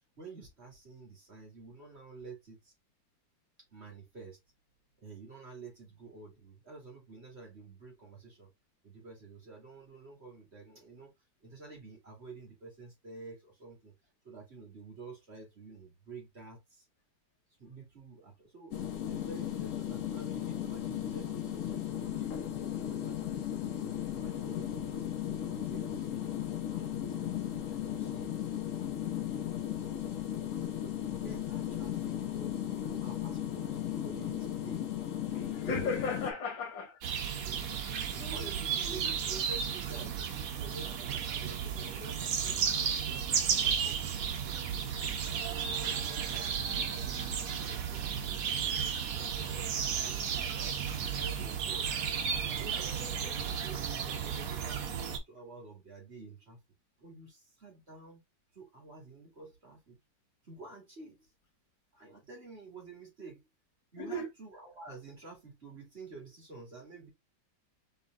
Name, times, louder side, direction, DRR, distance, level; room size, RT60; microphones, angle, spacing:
voice 1, 0.2-2.7 3.7-4.4 5.0-8.5 8.8-11.1 11.4-13.9 14.2-16.9 17.6-22.4 22.8-26.3 26.7-28.3 31.1-34.9 35.6-36.0 37.3-45.1 45.4-50.3 50.7-51.9 52.5-56.6 57.0-58.2 58.5-60.0 60.4-61.3 61.9-63.4 63.9-67.1, right 3 dB, 35° right, 2.2 m, -50 dB
sound 1, 18.7-36.3, left 10 dB, 55° left, 1.0 m, -36 dB
voice 2, 35.3-37.0 38.2-38.5 38.8-39.1 64.0-64.3, left 3 dB, 80° left, 2.0 m, -36 dB
sound 2, 37.0-55.2, right 7 dB, 60° right, 1.1 m, -33 dB
5.3 x 3.4 x 2.4 m
omnidirectional pair, 2.0 m